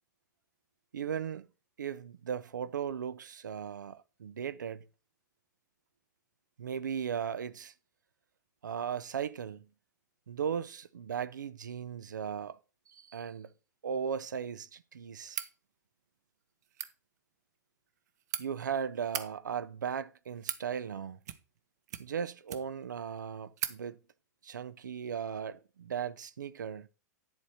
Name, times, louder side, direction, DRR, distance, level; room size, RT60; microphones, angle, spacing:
voice 1, 0.9-1.5 1.8-4.8 6.6-7.7 8.6-9.6 10.3-12.6 12.9-13.5 13.8-15.4 18.4-21.2 22.0-24.0 24.4-26.9, right 7 dB, 80° right, 0.7 m, -37 dB
sound 1, 15.3-15.5 16.6-16.9 17.9-18.4 19.0-19.3 20.1-20.7 21.2-21.6 21.9-22.9 23.2-23.3 23.6-23.8, right 11 dB, 65° right, 1.0 m, -38 dB
10.5 x 4.2 x 6.3 m
hypercardioid pair, 105°, 10 cm